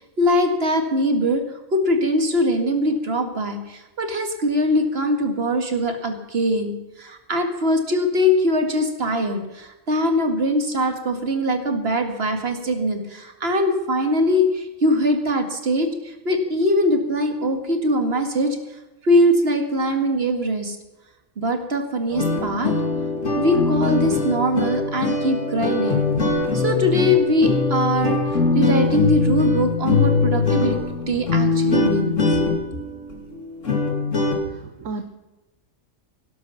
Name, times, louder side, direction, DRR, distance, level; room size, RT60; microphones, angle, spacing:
voice 1, 0.2-1.4 1.7-18.6 19.0-20.8 21.4-22.7 23.4-26.1 26.5-28.2 28.5-30.8 31.1-32.6, equal, 45° right, 5 dB, 2.3 m, -22 dB
sound 1, 22.1-34.4, left 3 dB, 65° left, 2.9 m, -22 dB
voice 2, 34.4-35.0, right 3 dB, 70° right, 7 dB, 1.4 m, -33 dB
18.0 x 12.0 x 5.8 m, 1.0 s
omnidirectional pair, 1.4 m